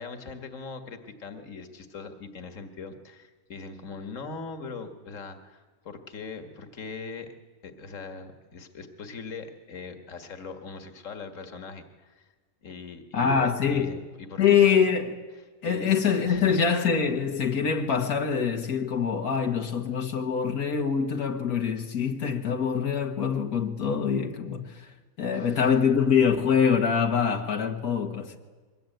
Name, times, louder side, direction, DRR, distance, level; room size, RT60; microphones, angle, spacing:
voice 1, 0.0-7.3 7.6-12.3 12.6-14.6 15.6-16.0 16.2-16.6 25.3-25.6, left 4 dB, 60° left, 2.1 m, -41 dB
voice 2, 13.1-13.9 14.4-15.2 15.6-24.8 25.2-28.4, left 7 dB, 85° left, 2.0 m, -24 dB
23.5 x 20.5 x 9.2 m
omnidirectional pair, 1.5 m